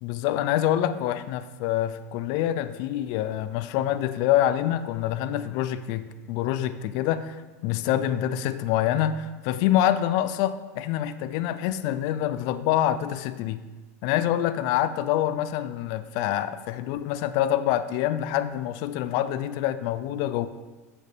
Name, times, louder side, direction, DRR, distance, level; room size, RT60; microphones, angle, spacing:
voice 1, 0.0-7.4 7.6-13.6 14.0-20.5, left 12 dB, 55° left, 12 dB, 0.4 m, -26 dB
7.6 x 6.5 x 3.4 m, 1.3 s
supercardioid pair, 125°, 8 cm